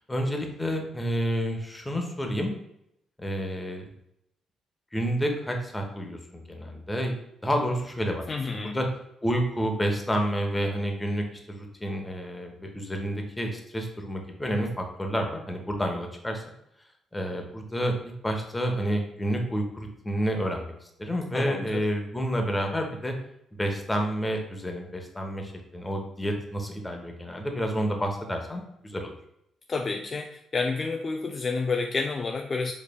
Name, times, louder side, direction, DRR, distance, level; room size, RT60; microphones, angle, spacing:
voice 1, 0.1-2.5 3.2-3.9 4.9-7.2 7.4-8.2 8.5-8.9 9.2-16.4 17.1-17.9 18.2-20.7 21.0-23.1 23.6-29.1, equal, 15° left, 3 dB, 0.9 m, -29 dB
voice 2, 8.3-8.8 21.3-21.9 29.7-32.7, left 4 dB, 40° left, 4 dB, 0.3 m, -29 dB
4.8 x 3.2 x 2.2 m, 0.78 s
hypercardioid pair, 50°, 0 cm